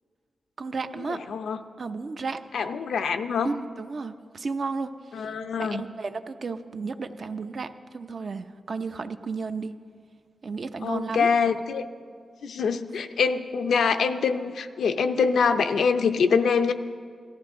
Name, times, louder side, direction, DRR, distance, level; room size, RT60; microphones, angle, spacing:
voice 1, 0.6-1.3 1.8-2.4 3.4-5.3 5.6-9.7 10.4-11.3, right 4 dB, 50° right, 9 dB, 0.6 m, -33 dB
voice 2, 1.1-1.6 2.5-3.5 5.1-5.8 10.8-11.8 12.4-16.7, left 5 dB, 90° left, 8 dB, 0.6 m, -24 dB
17.5 x 14.0 x 3.7 m, 2.1 s
wide cardioid pair, 110°, 0 cm